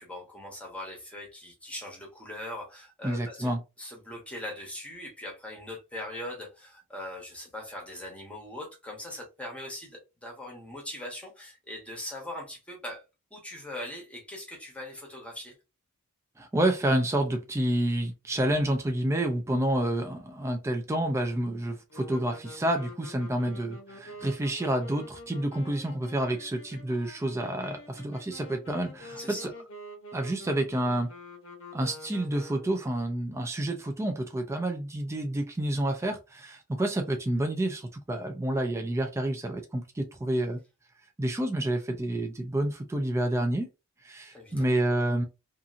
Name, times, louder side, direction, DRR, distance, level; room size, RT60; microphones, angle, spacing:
voice 1, 0.0-13.0 13.3-15.5 29.2-29.5 44.3-44.7, left 1 dB, 5° left, 0.9 m, -41 dB
voice 2, 3.0-3.6 16.4-29.5 30.1-31.1 31.7-40.6 41.2-43.7 44.0-45.2, right 1 dB, 15° right, 0.3 m, -29 dB
sound 1, 21.9-32.9, left 1 dB, 60° left, 0.8 m, -47 dB
2.8 x 2.4 x 2.4 m
head